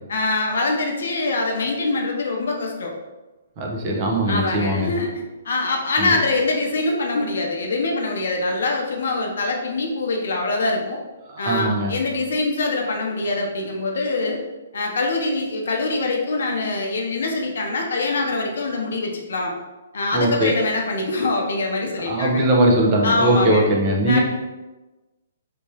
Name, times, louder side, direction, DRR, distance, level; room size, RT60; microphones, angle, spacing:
voice 1, 0.1-2.9 4.3-5.1 5.4-11.0 11.4-14.4 14.7-19.5 19.9-22.4 23.0-23.7 24.1-24.2, left 2 dB, 70° left, 1 dB, 0.6 m, -24 dB
voice 2, 3.6-4.9 6.0-6.1 11.3-11.9 20.1-20.5 22.0-24.2, right 1 dB, 35° right, -1 dB, 0.7 m, -20 dB
3.5 x 2.9 x 2.8 m, 1.1 s
hypercardioid pair, 140°, 0 cm